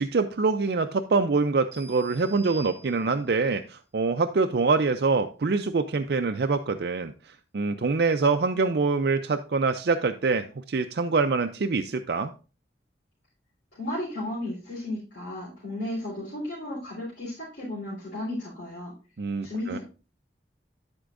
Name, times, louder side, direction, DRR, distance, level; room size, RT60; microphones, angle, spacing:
voice 1, 0.0-12.3 19.2-19.8, right 4 dB, 60° right, 7 dB, 0.5 m, -25 dB
sound 1, 1.7-3.4, right 2 dB, 20° right, 3.7 m, -47 dB
voice 2, 13.7-18.9 19.4-19.8, left 1 dB, 75° left, -6 dB, 3.7 m, -34 dB
10.5 x 8.0 x 2.5 m, 0.34 s
head